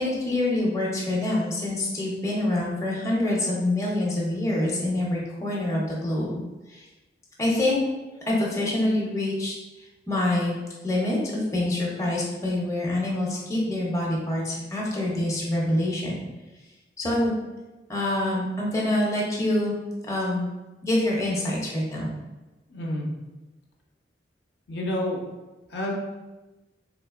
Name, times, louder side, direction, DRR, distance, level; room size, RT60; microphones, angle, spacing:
voice 1, 0.0-6.4 6.7-6.8 7.4-7.8 8.3-9.5 10.1-10.6 10.8-16.1 17.0-17.3 17.9-19.8 20.1-20.5 20.8-22.1, left 1 dB, 15° left, -4 dB, 0.6 m, -26 dB
voice 2, 22.7-23.1 24.7-25.2 25.7-25.9, left 1 dB, 65° left, -2 dB, 0.6 m, -29 dB
3.7 x 2.8 x 2.4 m, 1.1 s
head